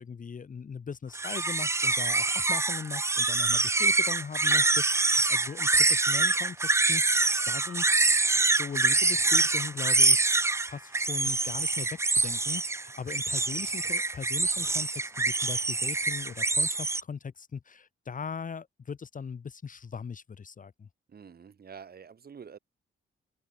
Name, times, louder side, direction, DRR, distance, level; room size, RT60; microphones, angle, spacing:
voice 1, 0.0-8.0 8.4-20.9, left 6 dB, 40° left, 1.2 m, -40 dB
sound 1, 1.1-17.0, right 3 dB, 15° right, 0.4 m, -25 dB
voice 2, 21.1-22.6, right 6 dB, 45° right, 2.3 m, -47 dB
open air
cardioid pair, 115°, 21 cm